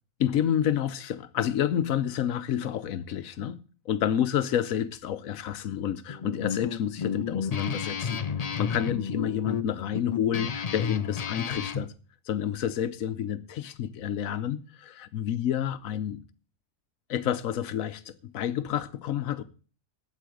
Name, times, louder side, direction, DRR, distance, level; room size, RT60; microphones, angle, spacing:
voice 1, 0.2-8.2 8.6-11.9 12.3-16.2 17.1-19.4, left 10 dB, 85° left, 1.2 m, -29 dB
Guitar, 6.1-11.9, left 6 dB, 45° left, 0.5 m, -32 dB
8.5 x 8.4 x 7.8 m
omnidirectional pair, 1.4 m